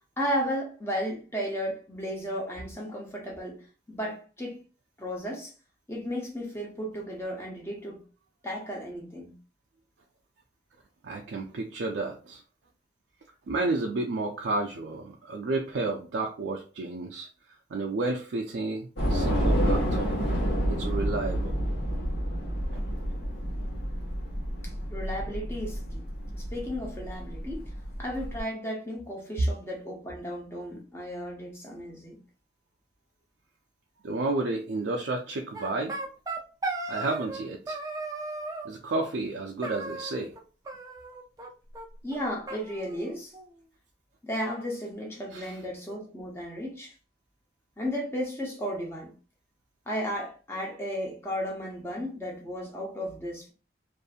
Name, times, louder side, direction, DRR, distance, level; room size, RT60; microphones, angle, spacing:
voice 1, 0.2-4.6 5.0-5.5 5.9-8.0 8.4-9.4 24.6-26.0 26.3-27.6 28.0-32.2 42.0-43.3 44.2-46.9 47.8-49.1 49.9-53.5, equal, 15° left, 0.7 m, -34 dB
voice 2, 11.0-12.4 13.5-17.3 17.7-20.1 20.7-21.6 22.7-22.8 34.0-36.0 36.9-37.8 38.6-40.3 45.3-45.5, right 2 dB, 80° right, 0.4 m, -31 dB
Train / Subway metro underground, 19.0-28.4, equal, 80° left, 1.1 m, -29 dB
sound 1, 35.5-37.4 37.7-38.7 39.6-40.4 40.7-41.5 41.7-41.8 42.1-42.2 42.5-43.5, right 3 dB, 20° right, 0.4 m, -36 dB
2.7 x 2.6 x 2.4 m
head